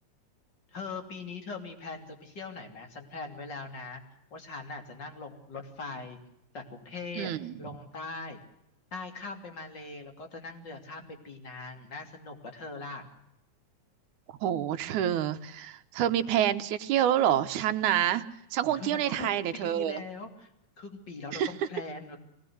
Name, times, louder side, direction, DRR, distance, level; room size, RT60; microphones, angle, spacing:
voice 1, 0.7-4.0 4.3-6.2 6.5-7.3 7.6-8.4 8.9-13.1 18.8-20.5 20.8-22.2, left 3 dB, 35° left, 5 dB, 3.5 m, -41 dB
voice 2, 7.2-7.5 14.3-18.2 18.5-20.0 21.3-21.5, right 11 dB, 80° right, 10 dB, 2.4 m, -27 dB
24.5 x 19.5 x 7.8 m, 0.82 s
omnidirectional pair, 3.4 m